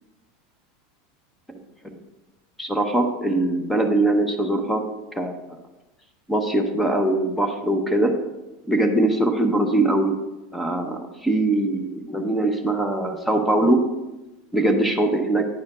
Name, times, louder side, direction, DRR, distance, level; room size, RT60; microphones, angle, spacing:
voice 1, 2.6-4.8 5.2-5.3 6.3-8.1 8.7-10.2 10.5-13.8 14.5-15.5, right 1 dB, 5° left, 5 dB, 0.8 m, -21 dB
9.6 x 4.3 x 3.7 m, 1.0 s
hypercardioid pair, 105°, 0 cm